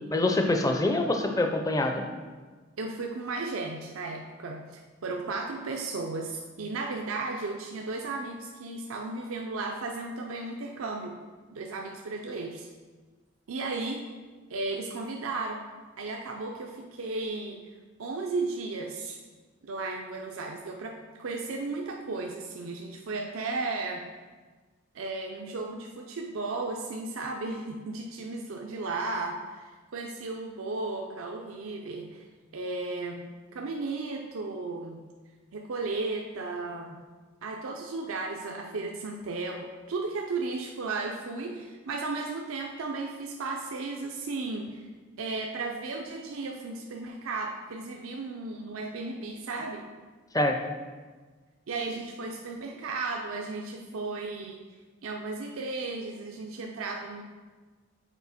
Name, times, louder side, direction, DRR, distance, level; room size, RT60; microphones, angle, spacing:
voice 1, 0.1-2.1 50.3-50.6, left 2 dB, 15° left, 4 dB, 0.5 m, -25 dB
voice 2, 2.8-11.2 11.5-12.7 13.5-14.1 14.5-15.6 16.0-17.6 18.0-19.2 19.6-24.1 24.9-32.3 32.5-35.0 35.5-37.0 37.4-44.9 45.2-49.9 51.7-54.6 55.0-57.2, right 3 dB, 90° right, 1 dB, 0.5 m, -35 dB
7.2 x 4.3 x 4.1 m, 1.4 s
head